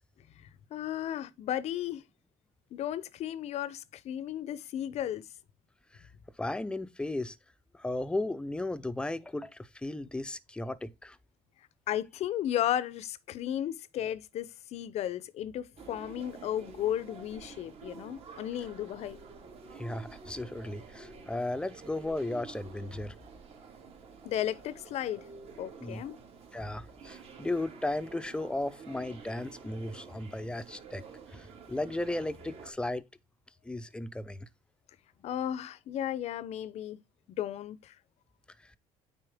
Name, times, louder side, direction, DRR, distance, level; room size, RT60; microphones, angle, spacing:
voice 1, 0.4-2.0 2.7-5.2 11.9-19.2 24.2-25.3 25.6-26.2 35.2-37.0 37.4-37.9, left 11 dB, 55° left, 0.6 m, -34 dB
voice 2, 6.4-7.4 7.7-11.2 19.8-23.1 25.8-26.0 26.5-31.0 31.3-33.0 33.6-34.5, left 2 dB, 5° left, 0.5 m, -35 dB
sound 1, 15.8-32.7, right 5 dB, 50° right, 2.3 m, -50 dB
9.0 x 4.1 x 3.5 m
cardioid pair, 110°, 13 cm